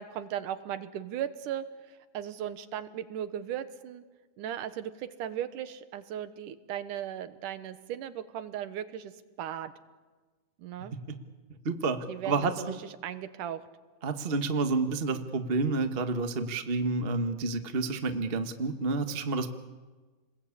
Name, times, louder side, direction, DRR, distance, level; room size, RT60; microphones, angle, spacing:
voice 1, 0.0-1.6 2.1-4.0 4.4-9.1 9.4-9.7 10.6-10.9 12.1-12.7 13.0-13.6, right 10 dB, 80° right, 11 dB, 2.8 m, -37 dB
voice 2, 10.8-11.2 11.6-12.8 14.0-19.5, right 3 dB, 40° right, 7 dB, 0.8 m, -30 dB
30.0 x 21.0 x 8.6 m, 1.3 s
omnidirectional pair, 3.6 m